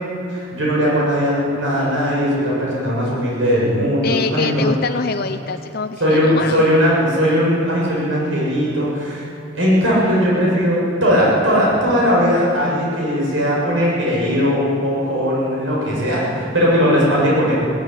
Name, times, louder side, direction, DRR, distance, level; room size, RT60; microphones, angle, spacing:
voice 1, 0.3-4.7 6.0-17.6, equal, 80° right, -5 dB, 7.4 m, -18 dB
voice 2, 4.0-6.6, left 4 dB, 50° left, 7 dB, 0.7 m, -24 dB
18.5 x 17.0 x 9.9 m, 2.8 s
head